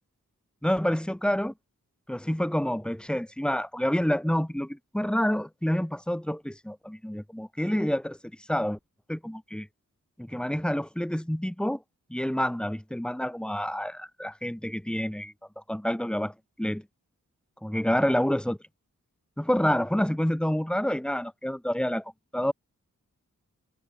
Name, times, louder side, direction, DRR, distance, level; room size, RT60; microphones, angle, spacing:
voice 1, 0.6-1.5 2.1-8.2 8.5-8.8 9.1-9.7 10.2-11.8 12.1-15.3 15.7-16.8 17.6-18.6 19.4-22.0 22.3-22.5, equal, 5° left, 1.1 m, -28 dB
wide cardioid pair, 85°, 32 cm